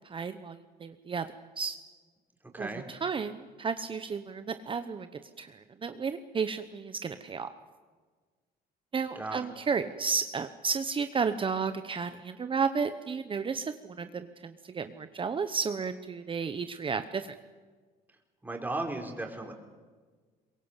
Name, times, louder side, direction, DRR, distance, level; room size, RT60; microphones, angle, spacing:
voice 1, 0.0-1.3 1.6-1.8 2.6-7.5 8.9-17.3, right 5 dB, 30° right, 10 dB, 1.0 m, -33 dB
voice 2, 2.5-2.8 9.1-9.4 18.4-19.5, right 2 dB, 10° right, 2 dB, 4.4 m, -35 dB
23.0 x 22.0 x 8.2 m, 1.4 s
cardioid pair, 110°, 17 cm